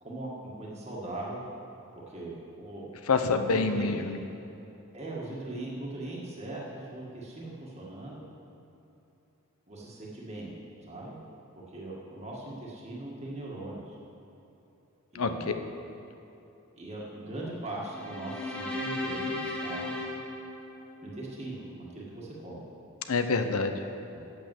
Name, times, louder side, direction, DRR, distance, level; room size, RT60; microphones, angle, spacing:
voice 1, 0.0-1.4 2.1-2.9 3.5-3.9 4.9-8.2 9.7-10.5 10.8-11.2 11.5-14.0 15.1-15.5 16.8-19.9 21.0-22.6 24.1-24.2, right 2 dB, 30° right, -5 dB, 1.6 m, -40 dB
voice 2, 3.1-4.2 15.1-15.6 23.1-23.7, left 4 dB, 80° left, 7 dB, 0.7 m, -27 dB
sound 1, 17.8-21.2, left 2 dB, 5° left, 1.0 m, -36 dB
8.8 x 8.1 x 7.6 m, 3.0 s
head